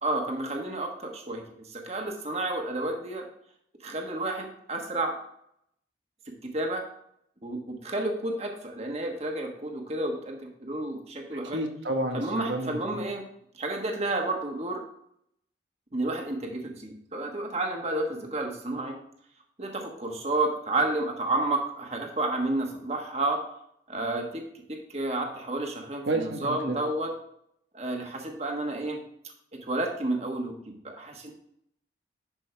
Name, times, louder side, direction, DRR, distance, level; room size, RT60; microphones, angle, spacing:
voice 1, 0.0-3.3 3.8-5.2 6.3-6.8 7.4-11.6 12.1-13.2 13.5-14.8 15.9-18.9 19.6-23.4 23.9-24.4 24.7-27.1 27.7-29.0 29.6-31.3, right 2 dB, 35° right, 2 dB, 1.3 m, -31 dB
voice 2, 11.5-13.0 26.1-26.8, right 1 dB, 90° right, 3 dB, 1.3 m, -30 dB
11.0 x 5.4 x 3.3 m, 0.72 s
head